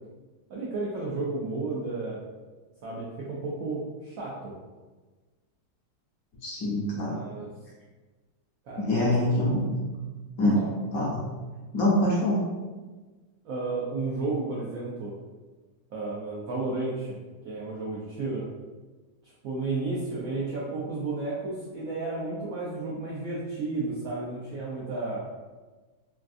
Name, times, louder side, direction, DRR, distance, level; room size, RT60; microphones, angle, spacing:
voice 1, 0.5-2.2 2.8-4.5 6.9-7.5 8.7-9.3 10.5-10.7 13.4-15.1 15.9-17.2 17.4-18.4 19.2-25.2, right 3 dB, 75° right, -6 dB, 0.7 m, -32 dB
voice 2, 6.4-7.2 8.8-9.7 10.4-10.6 10.9-11.2 11.7-12.4, left 1 dB, 65° left, -5 dB, 0.9 m, -24 dB
3.4 x 2.4 x 2.4 m, 1.3 s
omnidirectional pair, 2.0 m